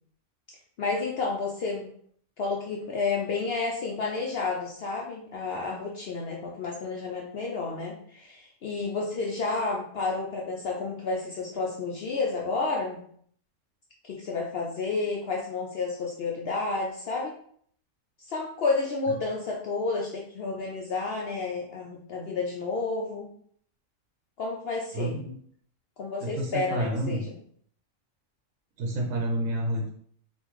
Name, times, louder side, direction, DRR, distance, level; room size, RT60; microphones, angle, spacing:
voice 1, 0.8-1.9 2.4-13.0 14.0-17.3 18.3-23.3 24.4-25.2 26.0-27.2, left 3 dB, 65° left, -1 dB, 0.6 m, -30 dB
voice 2, 24.9-25.3 26.2-27.2 28.8-29.9, right 1 dB, 75° right, -1 dB, 1.1 m, -29 dB
3.7 x 2.5 x 3.0 m, 0.62 s
omnidirectional pair, 1.4 m